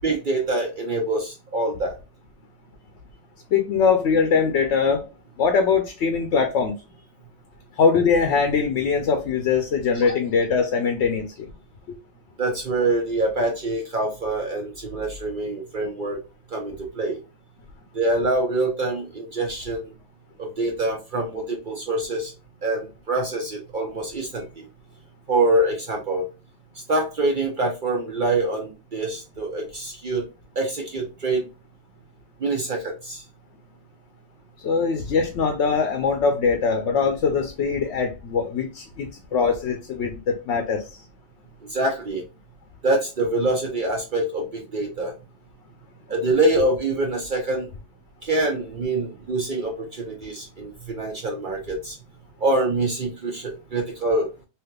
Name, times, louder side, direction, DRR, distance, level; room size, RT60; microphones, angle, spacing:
voice 1, 0.0-2.0 9.9-10.0 12.4-16.2 16.5-17.2 17.9-19.9 20.4-22.3 22.6-24.7 25.3-26.3 26.9-30.2 30.6-31.5 32.4-33.2 41.7-42.2 42.8-45.1 46.1-47.7 48.2-52.0 52.4-54.3, right 2 dB, 50° right, 0.9 m, -25 dB
voice 2, 3.5-5.0 5.4-6.7 7.8-11.5 11.9-12.0 34.6-40.8, left 5 dB, 75° left, 0.9 m, -22 dB
3.4 x 2.9 x 2.2 m
omnidirectional pair, 1.2 m